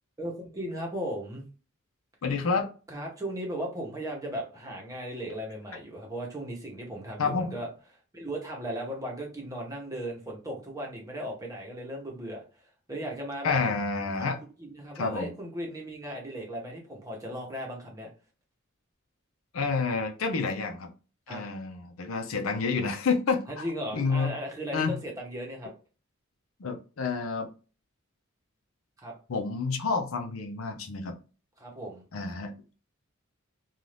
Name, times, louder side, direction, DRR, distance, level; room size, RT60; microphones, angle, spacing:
voice 1, 0.2-1.4 2.9-7.7 8.1-12.6 12.9-13.6 14.2-14.3 14.6-18.1 21.3-21.4 23.5-25.7 29.0-29.1 31.6-32.0, equal, 15° right, 0.9 m, -36 dB
voice 2, 2.2-2.7 7.2-7.5 13.4-14.4 15.0-15.3 19.5-20.9 21.3-23.4 23.9-24.3 24.7-25.0 26.6-27.5 29.3-31.2 32.1-32.6, left 4 dB, 80° left, 0.6 m, -29 dB
2.6 x 2.4 x 3.2 m
head